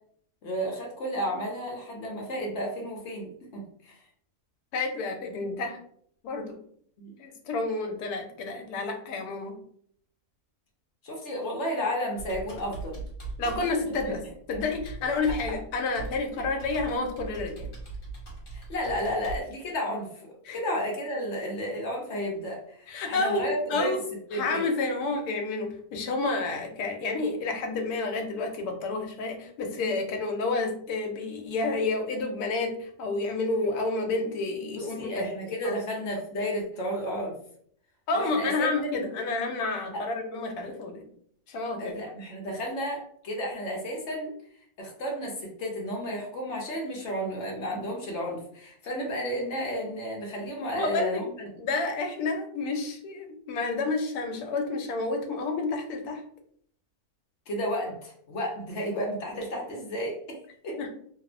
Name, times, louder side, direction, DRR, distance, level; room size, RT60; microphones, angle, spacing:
voice 1, 0.4-4.0 7.0-7.2 11.0-13.0 14.0-14.1 16.4-16.5 18.5-20.1 20.5-23.9 24.3-24.6 34.7-37.4 38.1-38.7 41.8-44.3 44.8-51.2 57.5-60.8, equal, 60° left, -1 dB, 0.8 m, -32 dB
voice 2, 4.7-5.8 6.2-6.6 7.2-9.6 13.4-14.2 14.5-17.7 20.4-20.6 22.9-24.0 24.3-35.3 35.6-35.7 38.1-41.0 41.5-41.9 50.7-51.2 51.6-56.2 60.8-60.9, left 3 dB, 80° left, 4 dB, 1.1 m, -30 dB
Computer keyboard, 12.1-19.4, right 4 dB, 40° left, 1.1 m, -40 dB
2.8 x 2.0 x 2.4 m, 0.63 s
omnidirectional pair, 1.6 m